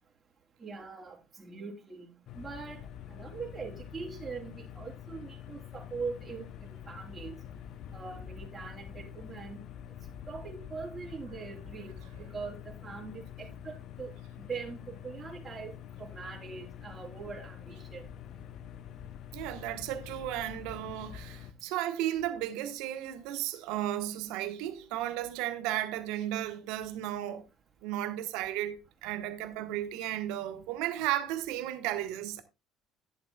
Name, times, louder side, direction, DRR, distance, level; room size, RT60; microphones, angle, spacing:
voice 1, 0.6-2.8 3.1-7.4 7.9-9.6 10.3-15.7 16.0-18.0, right 4 dB, 30° right, 3.5 m, -42 dB
sound 1, 2.3-21.5, left 9 dB, 55° left, 0.7 m, -46 dB
voice 2, 19.3-27.4 27.8-32.4, right 13 dB, 70° right, 1.1 m, -34 dB
12.0 x 11.0 x 2.3 m
hypercardioid pair, 55°, 0 cm